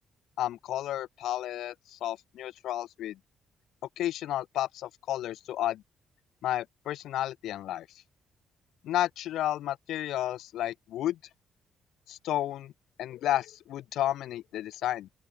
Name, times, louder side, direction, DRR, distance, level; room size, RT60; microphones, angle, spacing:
voice 1, 0.4-3.2 4.0-5.8 6.4-7.9 8.8-11.2 12.1-12.7 13.0-15.1, left 13 dB, 80° left, 1.1 m, -32 dB
open air
cardioid pair, 90°, 0 cm